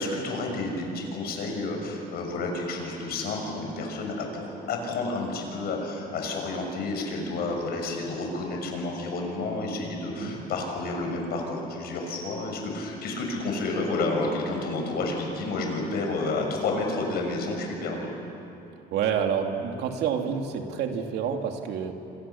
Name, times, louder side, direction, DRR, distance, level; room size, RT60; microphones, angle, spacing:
voice 1, 0.0-18.1, left 2 dB, 70° left, 2 dB, 6.4 m, -30 dB
voice 2, 18.9-21.9, right 7 dB, 80° right, 4 dB, 2.6 m, -28 dB
28.0 x 26.0 x 7.2 m, 2.9 s
cardioid pair, 110°, 17 cm